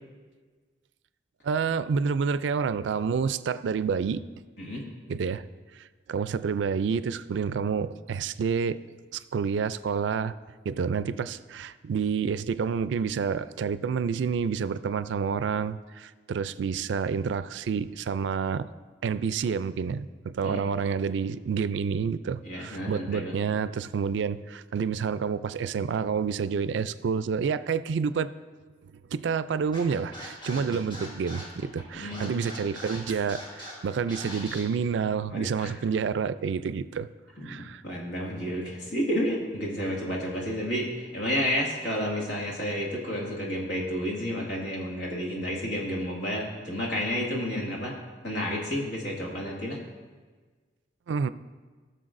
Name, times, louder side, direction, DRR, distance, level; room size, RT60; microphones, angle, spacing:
voice 1, 1.4-4.2 5.1-5.4 5.8-8.8 9.1-10.3 10.7-18.7 19.0-28.3 28.8-37.1 37.4-37.8 51.1-51.3, right 6 dB, 85° right, 15 dB, 0.3 m, -29 dB
voice 2, 22.4-23.4 30.5-30.8 31.9-32.4 35.3-35.7 37.4-48.0 48.2-49.8, equal, 75° left, -3 dB, 2.0 m, -31 dB
Scratching (performance technique), 29.7-34.6, left 1 dB, 25° left, 2.6 m, -41 dB
16.0 x 6.6 x 2.6 m, 1.4 s
head